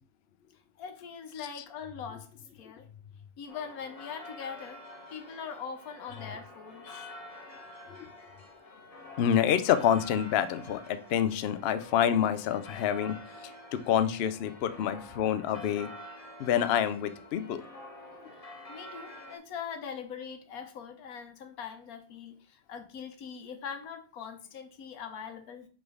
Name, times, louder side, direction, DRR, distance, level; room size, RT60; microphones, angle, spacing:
voice 1, 0.8-2.3 2.5-2.8 3.4-4.8 5.1-7.0 18.7-25.7, left 6 dB, 85° left, 7 dB, 1.3 m, -42 dB
sound 1, 3.5-19.4, left 1 dB, 30° left, 0.9 m, -48 dB
voice 2, 9.2-13.2 13.7-15.9 16.4-17.6, left 9 dB, 65° left, 11 dB, 0.6 m, -27 dB
5.0 x 3.9 x 4.8 m, 0.41 s
omnidirectional pair, 1.5 m